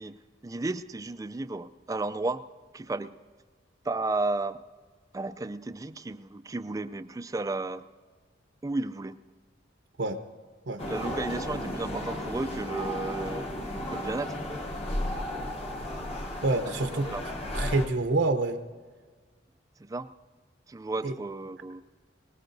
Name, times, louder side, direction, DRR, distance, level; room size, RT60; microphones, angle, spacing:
voice 1, 0.0-2.4 2.7-3.1 3.8-4.6 5.1-7.8 8.6-9.2 10.9-13.5 13.9-14.4 16.6-16.7 17.1-17.2 19.8-20.1 20.7-21.8, right 2 dB, 20° right, 12 dB, 0.3 m, -33 dB
sound 1, 10.8-17.9, left 1 dB, 35° left, 1.0 m, -34 dB
voice 2, 16.4-17.1 17.5-18.6 21.0-21.1, right 2 dB, 70° right, 7 dB, 0.8 m, -27 dB
22.5 x 19.5 x 2.6 m, 1.5 s
head